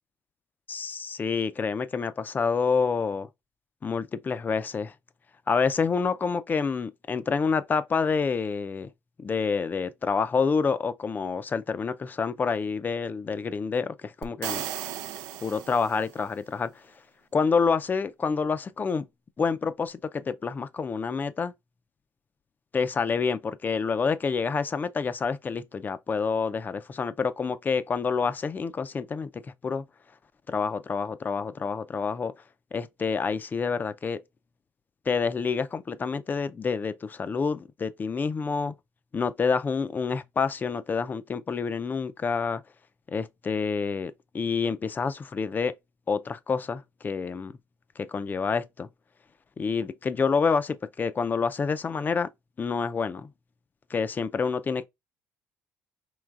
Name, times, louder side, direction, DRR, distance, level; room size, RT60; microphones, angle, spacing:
voice 1, 0.7-3.3 3.8-4.9 5.5-8.9 9.2-14.6 15.4-16.7 17.3-19.1 19.4-21.5 22.7-29.8 30.5-32.3 32.7-34.2 35.1-38.7 39.1-42.6 43.1-45.7 46.1-47.5 48.0-48.9 49.6-52.3 52.6-53.3 53.9-54.9, left 5 dB, 30° left, 0.4 m, -28 dB
sound 1, 14.2-16.3, right 11 dB, 80° right, 0.5 m, -36 dB
4.6 x 3.1 x 2.4 m
cardioid pair, 95°, 7 cm